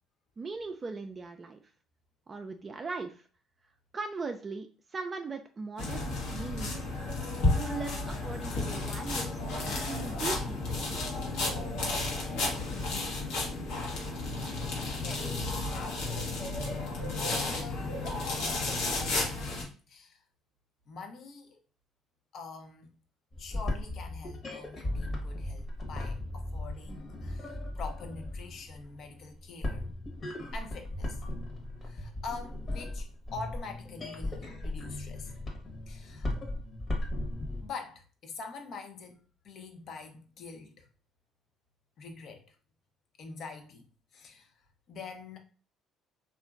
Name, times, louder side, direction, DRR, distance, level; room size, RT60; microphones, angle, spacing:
voice 1, 0.4-1.6 2.3-3.2 3.9-6.7 7.6-11.1, right 4 dB, 35° right, 0.3 m, -39 dB
sound 1, 5.8-19.6, left 2 dB, 75° left, 0.9 m, -32 dB
voice 2, 14.5-15.4 15.7-16.4 17.2-19.3 19.9-20.2 20.9-21.6 22.3-22.9 23.4-29.9 30.5-31.2 31.8-35.3 35.9-36.3 37.6-40.9 42.0-42.6 43.2-45.4, left 4 dB, 60° left, 0.6 m, -45 dB
sound 2, 23.3-37.7, left 1 dB, 40° left, 1.0 m, -37 dB
2.8 x 2.4 x 2.4 m
supercardioid pair, 65°, 0 cm